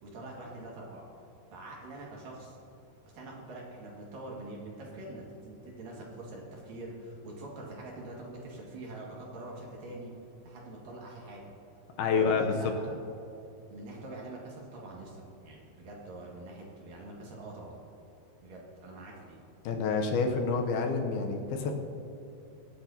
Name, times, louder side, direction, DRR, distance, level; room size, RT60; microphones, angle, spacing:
voice 1, 0.0-1.0 1.5-2.6 3.1-10.1 10.4-11.4 12.1-12.9 13.7-17.8 18.4-19.4, right 2 dB, 60° right, -3 dB, 3.4 m, -44 dB
voice 2, 12.0-12.6 19.6-21.7, left 5 dB, 75° left, 3 dB, 2.7 m, -28 dB
25.0 x 8.5 x 2.9 m, 3.0 s
omnidirectional pair, 4.7 m